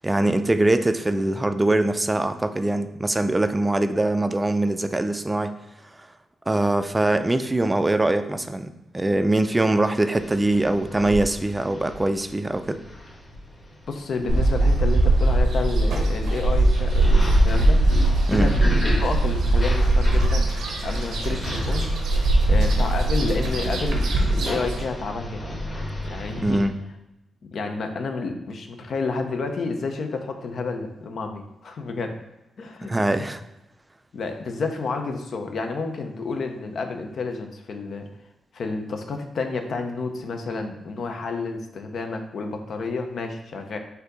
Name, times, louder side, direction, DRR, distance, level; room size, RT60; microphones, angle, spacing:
voice 1, 0.0-5.5 6.5-12.8 18.3-18.5 26.4-26.7 32.9-33.4, right 2 dB, 15° right, 9 dB, 0.3 m, -22 dB
sound 1, 10.2-26.7, equal, 30° left, 1.3 m, -32 dB
voice 2, 13.9-17.8 18.1-20.5 20.8-21.9 22.5-25.4 26.0-26.6 27.5-32.1 32.6-32.9 34.1-38.1 38.5-43.8, left 4 dB, 65° left, 5 dB, 0.5 m, -30 dB
sound 2, 14.3-24.8, right 2 dB, 85° right, 0.7 m, -20 dB
4.2 x 2.6 x 3.9 m, 0.94 s
cardioid pair, 80°, 0 cm